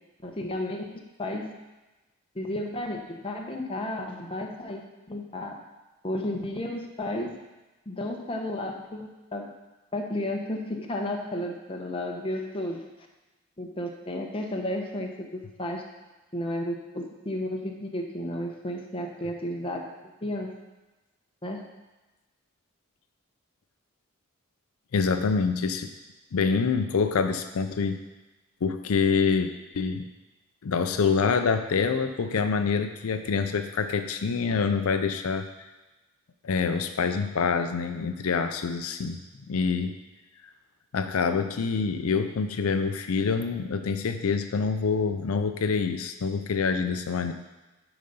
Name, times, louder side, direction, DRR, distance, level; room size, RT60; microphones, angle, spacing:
voice 1, 0.2-0.9 1.2-1.5 2.3-4.8 5.1-5.6 6.0-7.4 7.9-9.5 9.9-12.9 13.6-15.8 16.3-19.9 20.2-20.6 21.4-21.6, left 1 dB, 25° left, 1 dB, 0.9 m, -32 dB
voice 2, 24.9-25.9 26.3-28.0 28.6-30.0 30.6-35.5 36.4-39.2 39.5-40.0 40.9-47.3, left 5 dB, 85° left, 8 dB, 0.5 m, -26 dB
10.5 x 4.0 x 5.4 m, 1.1 s
head